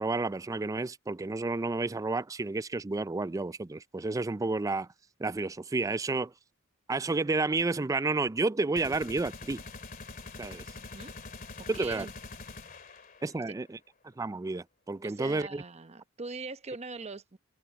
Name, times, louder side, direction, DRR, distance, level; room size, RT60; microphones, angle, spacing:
voice 1, 0.0-4.9 5.2-6.3 6.9-9.6 10.4-10.6 11.7-12.1 13.2-13.8 14.2-15.6, right 3 dB, 15° right, 0.3 m, -31 dB
sound 1, 8.8-13.5, left 3 dB, 45° left, 2.2 m, -45 dB
voice 2, 11.6-12.1 15.0-17.4, right 3 dB, 30° right, 0.8 m, -41 dB
head